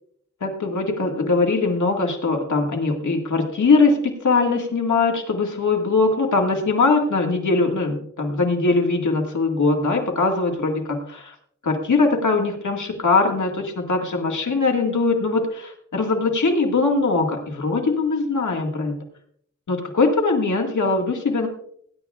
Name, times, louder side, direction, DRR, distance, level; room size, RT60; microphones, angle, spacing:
voice 1, 0.4-11.3 11.6-18.9 19.7-21.5, left 3 dB, 85° left, 1 dB, 1.9 m, -21 dB
20.0 x 9.6 x 2.4 m, 0.64 s
cardioid pair, 50°, 29 cm